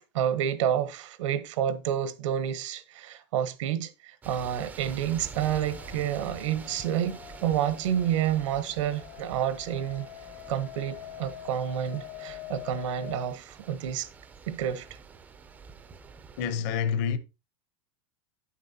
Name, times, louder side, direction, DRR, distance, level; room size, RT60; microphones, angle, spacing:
voice 1, 0.1-10.1 10.5-14.1 14.5-14.9, right 10 dB, 80° right, 1.0 m, -29 dB
sound 1, 4.2-16.5, right 5 dB, 10° right, 0.4 m, -47 dB
sound 2, 5.3-13.3, left 12 dB, 85° left, 2.8 m, -45 dB
voice 2, 16.4-17.2, left 7 dB, 40° left, 0.7 m, -27 dB
9.1 x 7.3 x 2.7 m
supercardioid pair, 175°, 16 cm